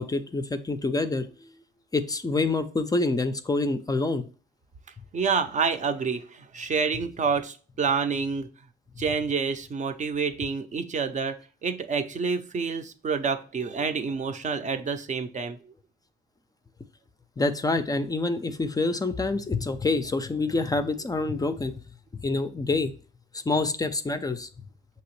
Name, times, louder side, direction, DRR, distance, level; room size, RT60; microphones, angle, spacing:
voice 1, 0.0-1.5 1.9-4.3 17.4-21.7 22.2-22.9 23.3-24.5, left 3 dB, 20° left, 9 dB, 0.4 m, -27 dB
voice 2, 5.1-8.5 9.0-11.4 11.6-15.6, right 5 dB, 40° right, 10 dB, 0.5 m, -28 dB
6.0 x 2.9 x 3.1 m, 0.38 s
cardioid pair, 90°, 20 cm